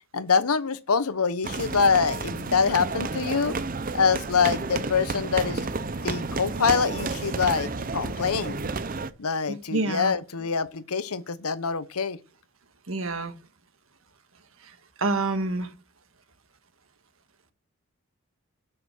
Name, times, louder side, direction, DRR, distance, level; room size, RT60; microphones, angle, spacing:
voice 1, 0.1-3.5 3.9-5.6 6.0-8.6 9.2-12.2, left 5 dB, 85° left, 0.9 m, -25 dB
sound 1, 1.4-9.1, right 3 dB, 40° right, 0.6 m, -31 dB
voice 2, 9.7-10.1 12.9-13.3 15.0-15.7, right 2 dB, 70° right, 1.6 m, -27 dB
12.0 x 6.7 x 5.5 m
head